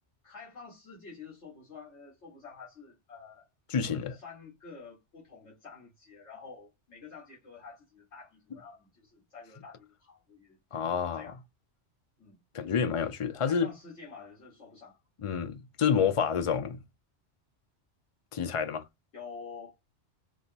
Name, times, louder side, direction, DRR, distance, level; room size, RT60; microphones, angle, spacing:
voice 1, 0.2-3.5 4.1-11.4 12.2-12.4 13.4-15.3 19.1-19.7, left 5 dB, 70° left, 1.8 m, -49 dB
voice 2, 3.7-4.2 10.7-11.3 12.5-13.7 15.2-16.8 18.3-18.8, left 7 dB, 50° left, 0.4 m, -28 dB
4.8 x 2.9 x 2.8 m
omnidirectional pair, 1.2 m